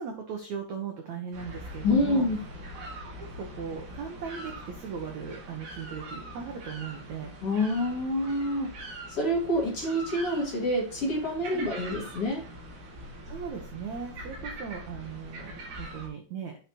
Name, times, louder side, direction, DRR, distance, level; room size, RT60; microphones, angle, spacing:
voice 1, 0.0-2.2 2.7-2.9 3.2-7.3 11.5-11.8 13.2-16.5, right 6 dB, 80° right, 3 dB, 1.6 m, -38 dB
sound 1, 1.3-16.1, right 1 dB, 50° right, 3.1 m, -43 dB
voice 2, 1.8-2.4 7.4-8.7 9.1-12.4, left 1 dB, 40° left, -2 dB, 2.6 m, -27 dB
8.9 x 5.9 x 3.0 m, 0.38 s
omnidirectional pair, 4.9 m